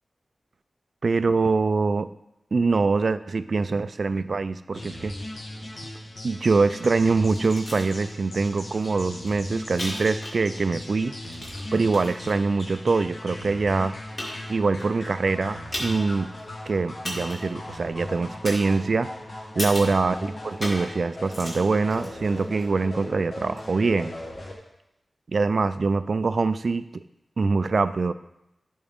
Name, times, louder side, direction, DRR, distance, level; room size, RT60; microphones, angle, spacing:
voice 1, 1.0-2.1 2.5-5.1 6.2-11.1 11.7-13.9 14.5-16.3 16.7-19.1 19.6-20.2 20.4-24.1 25.3-27.0 27.4-28.1, right 4 dB, 65° right, 13 dB, 0.3 m, -24 dB
sound 1, 4.7-24.5, left 1 dB, 70° left, 1.5 m, -38 dB
sound 2, 7.3-7.9 8.4-8.5 8.8-10.7 11.0-12.3 13.0-13.1 13.7-13.8 14.2-14.8 15.7-16.1 16.4-16.5 17.0-17.6 18.4-19.1 19.6-20.0 20.6-20.9 21.2-22.6 23.5-23.6, left 1 dB, 50° left, 2.5 m, -35 dB
11.5 x 4.8 x 3.6 m, 0.88 s
wide cardioid pair, 65°, 0 cm